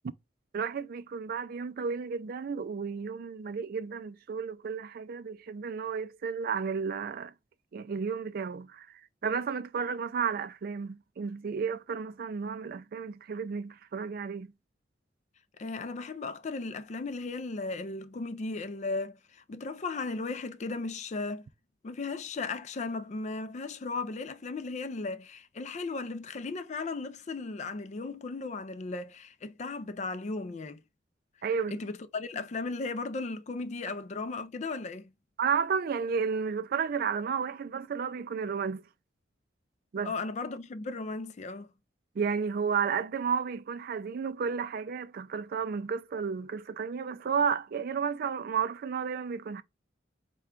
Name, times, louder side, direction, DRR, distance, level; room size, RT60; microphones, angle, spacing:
voice 1, 0.5-7.3 7.7-14.5 31.4-31.8 35.4-38.8 39.9-40.1 42.2-49.6, right 6 dB, 50° right, 0.3 m, -32 dB
voice 2, 15.6-21.4 21.8-30.8 31.7-35.1 40.0-41.7, left 3 dB, 40° left, 0.4 m, -36 dB
4.4 x 2.2 x 3.6 m
head